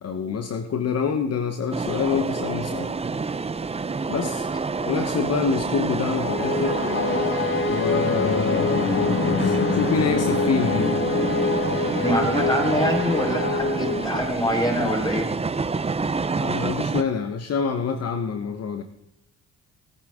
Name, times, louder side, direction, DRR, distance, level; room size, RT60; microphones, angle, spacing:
voice 1, 0.0-3.0 4.1-4.5 4.8-6.8 7.7-10.9 16.4-18.8, left 6 dB, 55° left, 7 dB, 1.1 m, -26 dB
sound 1, 1.7-17.0, right 4 dB, 20° right, 0.7 m, -28 dB
sound 2, 6.1-14.6, left 3 dB, 40° left, 1.7 m, -25 dB
voice 2, 11.9-15.3, equal, 15° left, 1 dB, 4.4 m, -24 dB
19.5 x 9.1 x 3.7 m, 0.81 s
cardioid pair, 90°, 30 cm